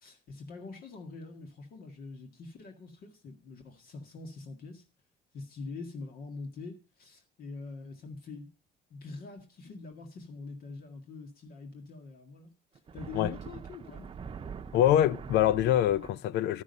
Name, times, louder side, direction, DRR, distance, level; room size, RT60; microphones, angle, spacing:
voice 1, 0.0-4.8 5.3-8.5 8.9-12.5 12.9-14.1, left 3 dB, 60° left, 1.9 m, -44 dB
sound 1, 12.7-16.1, right 6 dB, 30° right, 0.8 m, -44 dB
voice 2, 14.7-16.6, left 11 dB, 80° left, 0.5 m, -24 dB
12.5 x 6.2 x 5.3 m
cardioid pair, 110°, 17 cm